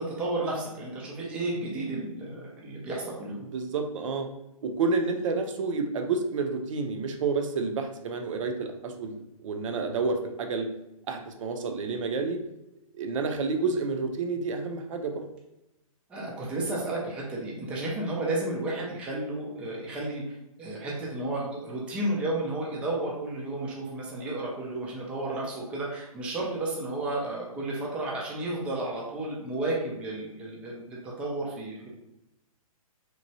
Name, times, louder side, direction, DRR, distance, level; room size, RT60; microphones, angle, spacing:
voice 1, 0.0-3.4 16.1-20.2 20.6-31.9, right 2 dB, 5° right, -4 dB, 0.3 m, -32 dB
voice 2, 3.5-4.3 4.6-10.7 11.1-12.4 12.9-15.2 17.7-17.9, right 4 dB, 60° right, 4 dB, 0.5 m, -29 dB
3.0 x 2.2 x 2.7 m, 0.89 s
hypercardioid pair, 145°, 19 cm